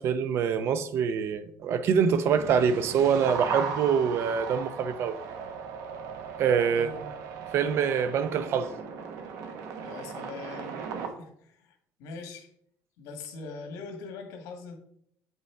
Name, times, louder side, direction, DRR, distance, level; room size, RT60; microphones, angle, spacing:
voice 1, 0.0-5.2 6.4-6.9 7.5-8.7, right 7 dB, 50° right, 0.5 m, -25 dB
sound 1, 2.3-11.1, right 6 dB, 70° right, 1.0 m, -37 dB
voice 2, 6.7-7.1 9.8-12.5 13.0-14.8, left 4 dB, 85° left, 1.7 m, -42 dB
8.3 x 5.4 x 3.4 m
cardioid pair, 165°, 6 cm